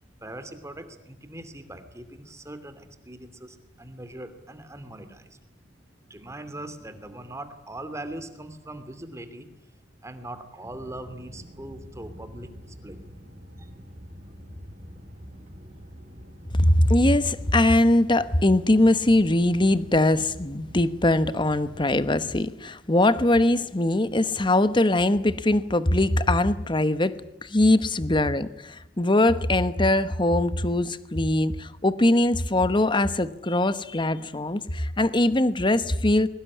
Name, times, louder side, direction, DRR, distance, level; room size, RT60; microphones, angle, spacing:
voice 1, 0.2-5.4 6.1-9.5 10.0-13.0 13.6-13.7, right 1 dB, 15° right, 10 dB, 2.7 m, -41 dB
sound 1, 10.6-22.2, equal, 35° right, 6.8 m, -45 dB
voice 2, 16.5-27.2 27.4-36.3, left 1 dB, 25° left, 13 dB, 1.1 m, -21 dB
22.5 x 20.0 x 9.8 m, 0.87 s
head